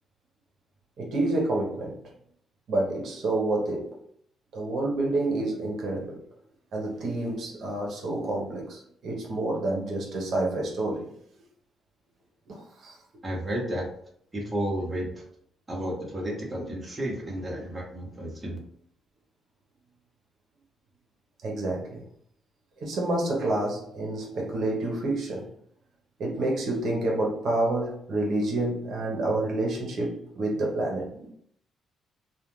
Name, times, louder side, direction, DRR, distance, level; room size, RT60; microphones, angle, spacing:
voice 1, 1.0-2.0 2.7-3.9 4.5-6.2 6.7-11.1 12.5-13.0 21.4-22.0 22.8-25.5 26.2-31.3, right 2 dB, 65° right, 0.7 m, -28 dB
voice 2, 13.2-13.8 14.3-15.2 15.7-18.6, equal, 20° right, 0.8 m, -32 dB
2.4 x 2.1 x 3.0 m
cardioid pair, 90°, 0 cm